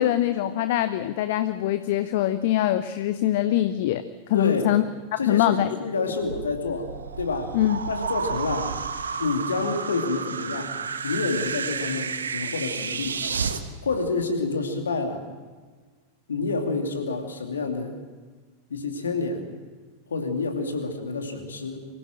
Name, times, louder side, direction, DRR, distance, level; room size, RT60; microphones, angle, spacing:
voice 1, 0.0-4.0 4.3-4.8 5.1-5.7 7.5-7.8, left 12 dB, 50° left, 12 dB, 0.7 m, -23 dB
voice 2, 4.3-4.7 5.2-7.6 7.9-8.8 9.2-10.7 11.0-13.2 13.8-15.2 16.3-18.0 18.7-19.5 20.1-21.9, left 3 dB, 70° left, 4 dB, 2.6 m, -28 dB
sound 1, 6.2-13.6, right 5 dB, 70° right, 1.2 m, -31 dB
25.0 x 16.0 x 7.7 m, 1.4 s
figure-of-eight pair, 90°, 0 cm